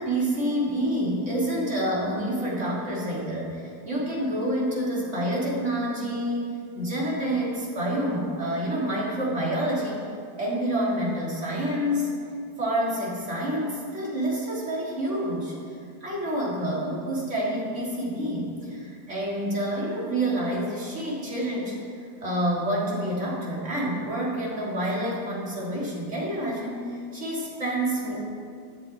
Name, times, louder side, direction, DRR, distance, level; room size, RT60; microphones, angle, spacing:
voice 1, 0.0-6.5 6.8-10.0 10.4-12.1 12.6-15.6 16.0-28.2, right 1 dB, 45° right, -5 dB, 3.5 m, -28 dB
17.0 x 11.0 x 4.5 m, 2.4 s
omnidirectional pair, 1.7 m